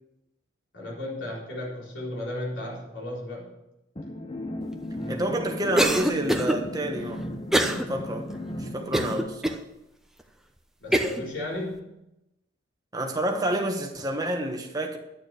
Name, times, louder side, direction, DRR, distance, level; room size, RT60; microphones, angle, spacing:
voice 1, 0.7-3.5 4.9-5.3 10.8-11.9, left 1 dB, 65° left, 4.0 m, -35 dB
sound 1, 4.0-9.3, left 1 dB, 25° left, 1.0 m, -35 dB
voice 2, 5.1-7.2 7.5-8.3 8.6-9.6 12.9-15.0, right 1 dB, 20° right, 1.3 m, -29 dB
Cough, 5.8-6.6 7.5-7.8 8.3-8.4 8.9-9.6 10.2-10.3 10.9-11.2, right 1 dB, ahead, 0.8 m, -23 dB
11.0 x 7.0 x 6.7 m
head